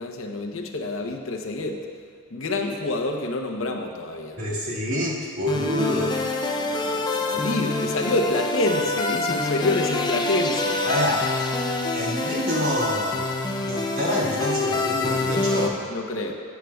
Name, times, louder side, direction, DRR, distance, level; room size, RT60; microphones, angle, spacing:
voice 1, 0.0-1.8 2.3-4.4 6.6-11.2 15.9-16.3, left 2 dB, 70° left, 3 dB, 0.8 m, -27 dB
voice 2, 4.4-6.4 10.8-11.2 11.9-13.3 13.6-15.8, equal, 75° right, -5 dB, 1.9 m, -27 dB
sound 1, 5.5-15.7, left 2 dB, 20° left, 0.4 m, -26 dB
12.5 x 8.1 x 2.3 m, 2.2 s
head